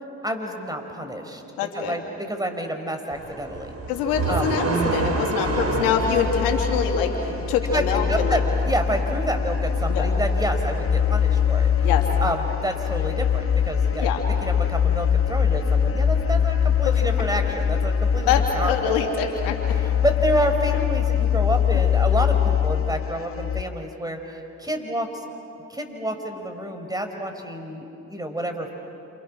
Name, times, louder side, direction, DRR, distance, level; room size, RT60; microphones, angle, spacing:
voice 1, 0.2-1.4 1.7-3.7 4.3-4.6 7.7-11.7 12.2-19.0 19.8-25.3 25.7-28.7, right 1 dB, 10° right, 5 dB, 4.7 m, -29 dB
voice 2, 1.6-1.9 3.9-8.4 9.9-10.1 11.8-12.1 14.0-14.2 16.8-17.0 18.3-19.6, left 7 dB, 90° left, 2 dB, 2.9 m, -24 dB
sound 1, 3.1-12.1, right 3 dB, 45° right, 5.1 m, -31 dB
sound 2, 5.4-23.6, left 8 dB, 40° left, 0.9 m, -23 dB
30.0 x 28.0 x 6.3 m, 3.0 s
supercardioid pair, 55°, 34 cm